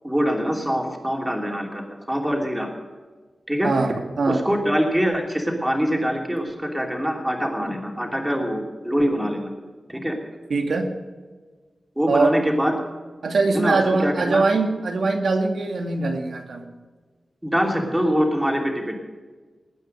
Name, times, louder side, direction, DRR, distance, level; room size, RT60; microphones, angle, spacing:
voice 1, 0.0-2.7 3.5-3.7 4.3-9.5 9.9-10.2 12.0-12.7 13.5-14.5 17.4-18.9, equal, 5° right, 1 dB, 2.9 m, -24 dB
voice 2, 3.6-4.4 10.5-10.9 12.1-12.4 13.2-16.6, right 3 dB, 85° right, 4 dB, 2.1 m, -22 dB
20.0 x 9.2 x 6.6 m, 1.4 s
wide cardioid pair, 115°, 0 cm